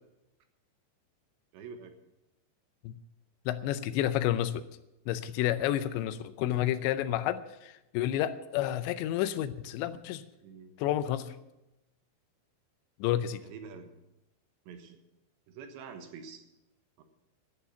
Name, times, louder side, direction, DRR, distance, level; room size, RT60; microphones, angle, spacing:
voice 1, 1.5-1.9 10.4-10.7 13.4-13.9 14.7-15.0 15.5-16.4 17.0-17.1, right 5 dB, 80° right, 7 dB, 3.4 m, -46 dB
voice 2, 3.5-4.7 5.1-10.2 10.8-11.4 13.0-13.4, left 12 dB, 80° left, 12 dB, 2.9 m, -30 dB
11.5 x 8.6 x 9.4 m, 0.93 s
omnidirectional pair, 5.2 m